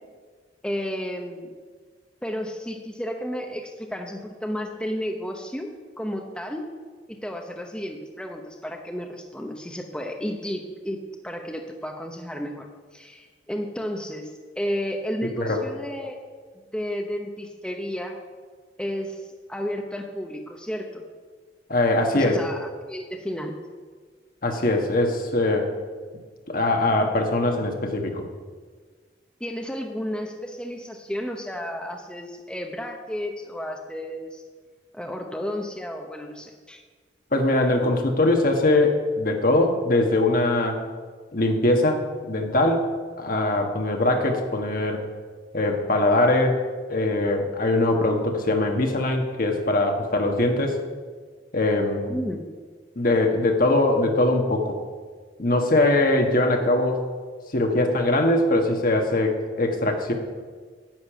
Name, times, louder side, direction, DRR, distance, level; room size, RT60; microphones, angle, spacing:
voice 1, 0.6-1.5 2.2-5.7 6.0-6.7 7.1-12.7 12.9-16.2 16.5-18.2 18.8-21.0 22.1-23.6 29.4-34.4 34.9-36.8 52.1-52.4, equal, 5° left, 2 dB, 0.8 m, -32 dB
voice 2, 21.7-22.4 24.4-25.7 26.5-28.2 37.3-40.8 41.3-42.9 43.2-45.0 45.5-46.6 46.9-50.8 51.5-52.2 52.9-54.8 55.4-57.0 57.5-60.1, left 2 dB, 55° left, 3 dB, 1.5 m, -22 dB
10.5 x 6.8 x 9.0 m, 1.5 s
head